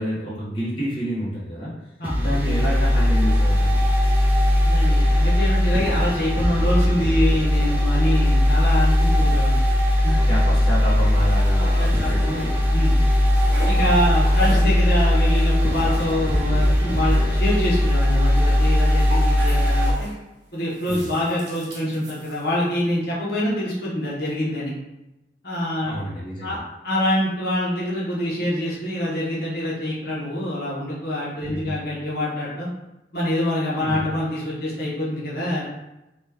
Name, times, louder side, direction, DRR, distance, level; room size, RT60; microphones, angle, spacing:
voice 1, 0.0-1.7 2.2-3.8 10.1-12.5 13.7-14.1 20.9-21.1 25.9-26.6 31.4-31.7 33.8-34.0, equal, 30° left, -8 dB, 1.0 m, -29 dB
sound 1, 2.0-19.9, left 1 dB, 10° right, 0.5 m, -19 dB
voice 2, 4.6-9.6 10.0-10.2 11.6-12.4 12.7-13.0 13.6-20.1 20.5-24.7 25.4-26.0 26.4-26.6 26.8-32.7 33.1-35.6, left 1 dB, 60° left, -7 dB, 1.0 m, -25 dB
sound 2, 10.8-12.7 13.0-20.2 20.7-22.7, right 1 dB, 85° right, 0.9 m, -40 dB
3.0 x 2.3 x 3.4 m, 0.95 s
head